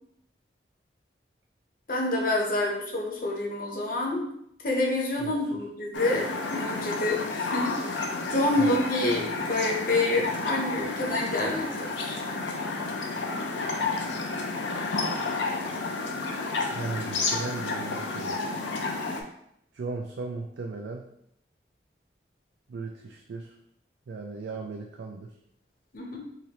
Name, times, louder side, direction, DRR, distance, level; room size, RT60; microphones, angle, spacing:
voice 1, 1.9-4.2 4.6-12.2 25.9-26.2, left 2 dB, 50° left, -1 dB, 0.8 m, -28 dB
sound 1, 5.9-19.2, left 3 dB, 85° left, 0.5 m, -31 dB
voice 2, 16.7-18.4 19.7-21.1 22.7-23.5 24.1-25.3, right 3 dB, 75° right, 1 dB, 0.4 m, -36 dB
3.8 x 3.0 x 2.9 m, 0.74 s
head